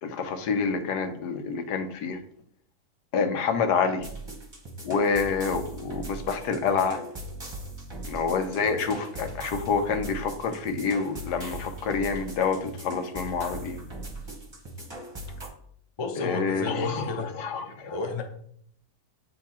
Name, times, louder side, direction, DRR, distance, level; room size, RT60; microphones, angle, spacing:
voice 1, 0.0-2.2 3.1-4.1 4.8-7.0 8.0-13.8 16.2-18.0, left 5 dB, 85° left, 8 dB, 1.3 m, -27 dB
sound 1, 4.0-15.5, right 1 dB, 20° right, 0.9 m, -40 dB
voice 2, 16.0-17.3 17.9-18.2, left 3 dB, 40° left, 4 dB, 0.4 m, -31 dB
7.9 x 2.9 x 4.2 m, 0.66 s
omnidirectional pair, 1.7 m